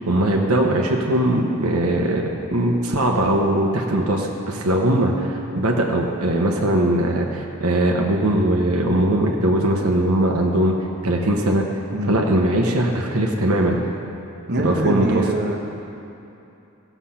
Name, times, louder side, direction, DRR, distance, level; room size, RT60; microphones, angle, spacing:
voice 1, 0.1-10.7 11.0-11.7 12.1-13.8 14.6-15.3, right 1 dB, 70° right, 0 dB, 1.0 m, -20 dB
voice 2, 14.5-15.6, right 1 dB, 50° right, 1 dB, 1.1 m, -24 dB
15.5 x 7.0 x 5.7 m, 2.8 s
head